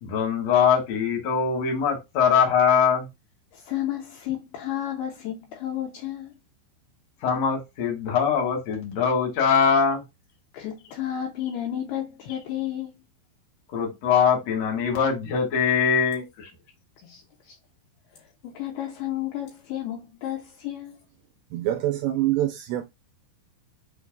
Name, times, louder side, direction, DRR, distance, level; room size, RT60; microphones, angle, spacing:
voice 1, 0.0-3.1 7.2-10.0 13.7-16.5, left 6 dB, 60° left, 1.9 m, -22 dB
voice 2, 3.5-6.4 10.5-12.9 17.0-17.6 18.4-21.0, left 11 dB, 75° left, 2.4 m, -32 dB
voice 3, 21.5-22.8, right 14 dB, 85° right, 2.6 m, -25 dB
7.1 x 3.1 x 2.4 m
omnidirectional pair, 5.5 m